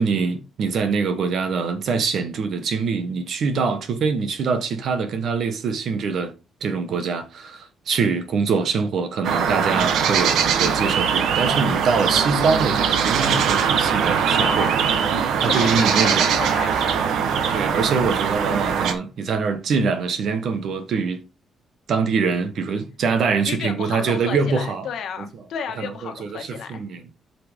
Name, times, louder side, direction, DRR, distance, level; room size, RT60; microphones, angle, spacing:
voice 1, 0.0-6.3 6.6-14.7 15.4-16.3 17.5-21.2 21.9-24.9 25.2-25.3 25.8-27.1, right 5 dB, 55° right, 1.3 m, -24 dB
sound 1, 9.2-18.9, right 7 dB, 85° right, 1.2 m, -21 dB
voice 2, 14.4-14.9 15.2-17.1 17.3-17.6 23.5-26.8, left 7 dB, 65° left, 1.5 m, -33 dB
8.4 x 5.9 x 3.7 m
cardioid pair, 180°, 0 cm